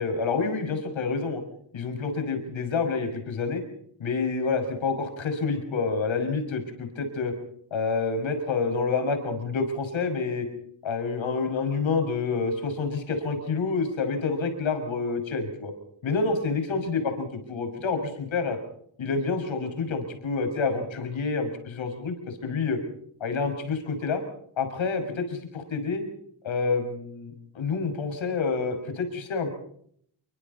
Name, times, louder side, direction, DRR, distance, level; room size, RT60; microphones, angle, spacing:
voice 1, 0.0-1.4 1.7-3.6 4.0-7.3 7.7-10.5 10.8-15.7 16.0-18.6 19.0-22.8 23.2-24.2 24.6-26.0 26.4-29.5, left 4 dB, 80° left, 6 dB, 6.2 m, -28 dB
29.5 x 24.0 x 4.2 m, 0.65 s
wide cardioid pair, 125°, 46 cm